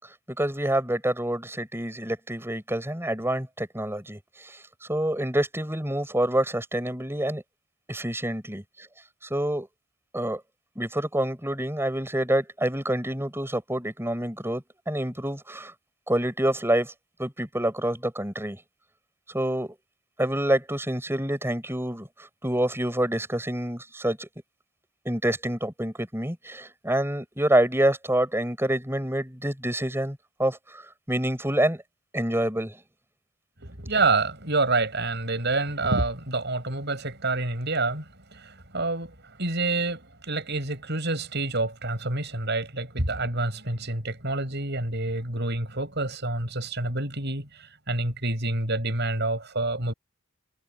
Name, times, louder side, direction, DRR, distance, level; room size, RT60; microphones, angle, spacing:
voice 1, 0.4-7.4 7.9-8.9 9.2-9.7 10.1-10.4 10.7-15.7 16.1-16.9 17.2-18.6 19.3-19.7 20.2-22.1 22.4-24.3 25.0-30.8 31.1-31.8 32.1-32.8, right 1 dB, 10° right, 6.4 m, -27 dB
voice 2, 33.6-38.0 38.3-49.9, right 2 dB, 50° right, 7.9 m, -28 dB
head